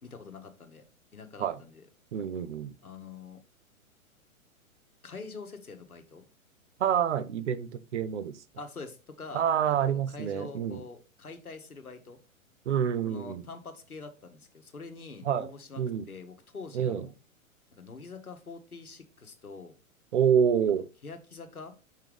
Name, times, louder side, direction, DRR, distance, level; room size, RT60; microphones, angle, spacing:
voice 1, 0.0-0.8 1.1-1.8 2.8-3.4 5.0-6.2 8.6-9.4 9.8-12.2 13.1-17.1 17.7-19.7 21.0-21.7, left 4 dB, 85° left, 1.3 m, -45 dB
voice 2, 2.1-2.7 6.8-8.3 9.3-10.8 12.7-13.4 15.2-15.5 15.8-16.0 16.7-17.1 20.1-20.9, right 8 dB, 55° right, 0.7 m, -27 dB
5.8 x 5.7 x 3.4 m
figure-of-eight pair, 110°, 43 cm